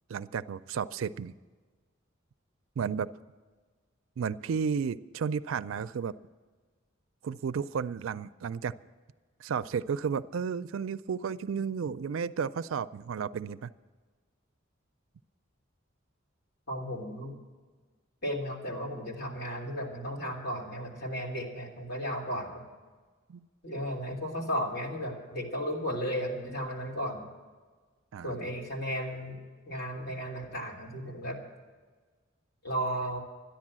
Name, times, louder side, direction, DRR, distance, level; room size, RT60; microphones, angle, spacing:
voice 1, 0.1-1.3 2.8-3.1 4.2-6.1 7.2-8.7 9.4-13.7 23.3-23.5 28.1-28.5, right 6 dB, 75° right, 15 dB, 0.4 m, -33 dB
voice 2, 16.7-17.3 18.2-22.6 23.6-27.3 28.2-29.4 29.7-31.4 32.6-33.2, equal, 55° left, -1 dB, 3.2 m, -34 dB
13.5 x 10.5 x 7.5 m, 1.4 s
head